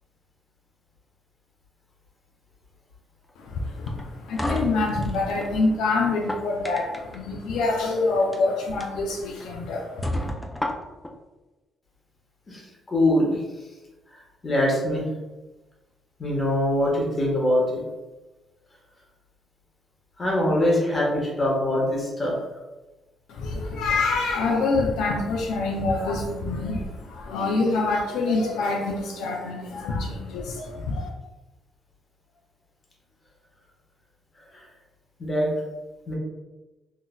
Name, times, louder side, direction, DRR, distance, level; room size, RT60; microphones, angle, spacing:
voice 1, 3.4-10.3 23.3-31.1, left 3 dB, 90° left, -1 dB, 0.4 m, -26 dB
sound 1, 3.9-5.5 6.1-7.2 8.2-8.4 8.8-8.9 9.4-9.5 10.0-11.1, left 1 dB, 15° left, 0.4 m, -31 dB
voice 2, 12.9-13.4 14.4-15.0 16.2-17.8 20.2-22.3 35.2-35.5 36.1-36.2, left 1 dB, 35° left, -3 dB, 1.1 m, -23 dB
3.7 x 2.6 x 2.2 m, 1.1 s
cardioid pair, 90°, 0 cm